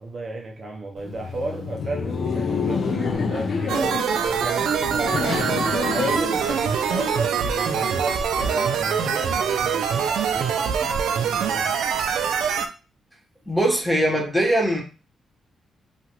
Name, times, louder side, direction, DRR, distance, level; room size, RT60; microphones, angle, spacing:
voice 1, 0.0-11.7, right 2 dB, 40° right, 0 dB, 0.6 m, -33 dB
Laughter, 1.0-7.3, left 5 dB, 55° left, 0.4 m, -28 dB
sound 1, 3.7-12.7, right 7 dB, 85° right, 0.4 m, -24 dB
voice 2, 13.5-14.8, right 1 dB, ahead, -2 dB, 1.0 m, -21 dB
2.9 x 2.4 x 2.9 m, 0.31 s
cardioid pair, 115°, 0 cm